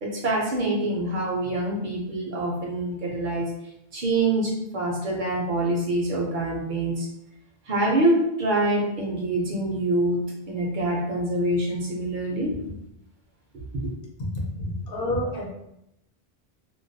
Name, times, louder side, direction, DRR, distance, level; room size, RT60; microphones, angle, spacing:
voice 1, 0.0-3.5 3.9-7.1 7.7-10.2 10.5-12.5 13.8-13.9, right 1 dB, 60° right, -1 dB, 0.6 m, -25 dB
voice 2, 14.6-15.5, left 1 dB, 65° left, -2 dB, 0.8 m, -29 dB
2.3 x 2.2 x 2.5 m, 0.82 s
omnidirectional pair, 1.0 m